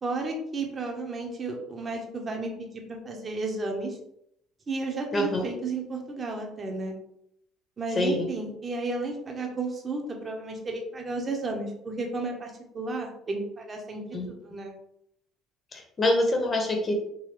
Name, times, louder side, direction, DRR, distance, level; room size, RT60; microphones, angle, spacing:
voice 1, 0.0-4.0 4.7-6.9 7.8-14.0 14.3-14.7, right 3 dB, 35° right, 1 dB, 0.9 m, -33 dB
voice 2, 5.1-5.4 7.9-8.3 14.1-14.3 15.7-16.9, left 1 dB, 30° left, 1 dB, 1.2 m, -25 dB
3.9 x 2.6 x 3.1 m, 0.76 s
supercardioid pair, 85°, 0 cm